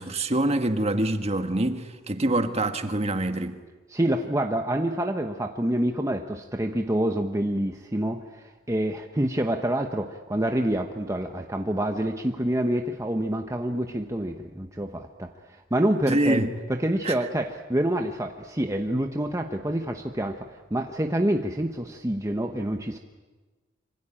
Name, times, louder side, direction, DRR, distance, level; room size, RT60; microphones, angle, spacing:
voice 1, 0.0-3.6 16.1-16.5 17.0-17.1, right 1 dB, 30° right, 1.6 m, -25 dB
voice 2, 3.9-23.0, right 1 dB, 15° right, 1.1 m, -27 dB
26.5 x 25.0 x 8.9 m
head